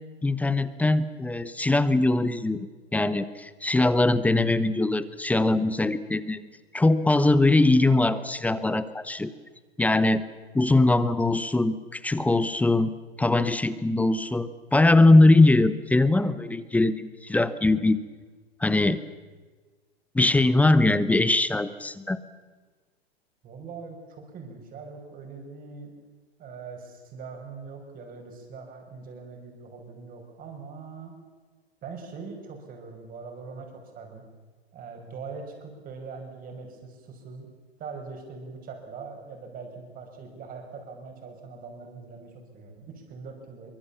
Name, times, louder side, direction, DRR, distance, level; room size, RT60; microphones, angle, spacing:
voice 1, 0.2-2.7 2.9-6.4 6.7-9.3 9.8-10.2 10.5-12.9 13.2-18.0 18.6-19.0 20.1-22.2, left 2 dB, 5° left, 14 dB, 0.8 m, -21 dB
voice 2, 23.4-25.9 26.4-31.1 31.8-34.2 34.7-37.5 37.8-43.7, right 4 dB, 25° right, 4 dB, 5.7 m, -42 dB
24.0 x 23.5 x 7.1 m, 1.4 s
hypercardioid pair, 120°, 32 cm